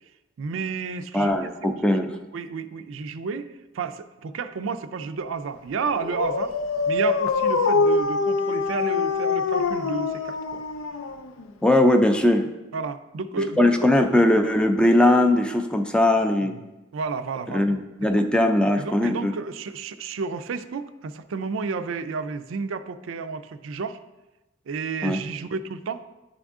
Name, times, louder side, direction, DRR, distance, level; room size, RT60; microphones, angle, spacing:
voice 1, 0.4-1.5 2.1-6.6 6.9-10.6 12.7-13.9 16.4-16.6 16.9-17.7 18.8-24.0 24.7-26.0, right 5 dB, 80° right, 11 dB, 0.4 m, -31 dB
voice 2, 1.1-2.1 11.6-12.5 13.6-16.5 17.5-19.3 25.0-25.2, left 1 dB, 5° left, 5 dB, 0.4 m, -20 dB
Dog, 5.8-11.5, left 4 dB, 85° left, 0.5 m, -24 dB
10.5 x 3.6 x 3.6 m, 1.0 s
head